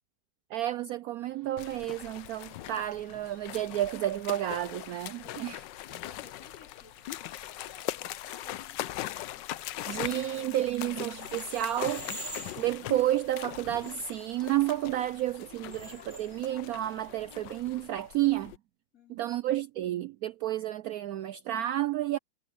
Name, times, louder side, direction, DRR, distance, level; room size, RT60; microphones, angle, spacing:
voice 1, 0.5-5.6 9.9-12.1 12.6-18.5 19.1-22.2, right 13 dB, 85° right, 0.8 m, -31 dB
sound 1, 1.2-13.9, right 1 dB, 65° right, 5.5 m, -62 dB
sound 2, 1.6-18.6, left 14 dB, 75° left, 1.3 m, -41 dB
voice 2, 5.2-7.0 7.4-9.4 18.9-19.4, left 3 dB, 45° left, 5.4 m, -57 dB
sound 3, 11.1-17.6, right 1 dB, 25° right, 4.8 m, -47 dB
omnidirectional pair, 2.1 m